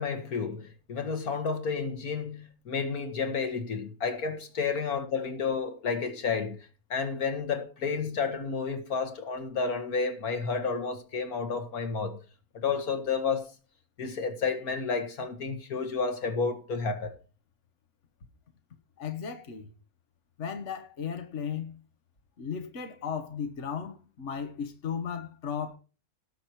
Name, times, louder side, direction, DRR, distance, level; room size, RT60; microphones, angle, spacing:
voice 1, 0.0-6.6 6.9-12.2 12.5-13.4 14.0-17.1, left 5 dB, 80° left, 2.2 m, -31 dB
voice 2, 19.0-19.7 20.4-21.8 22.4-25.8, left 7 dB, 55° left, 1.6 m, -35 dB
18.0 x 6.4 x 4.5 m
omnidirectional pair, 1.5 m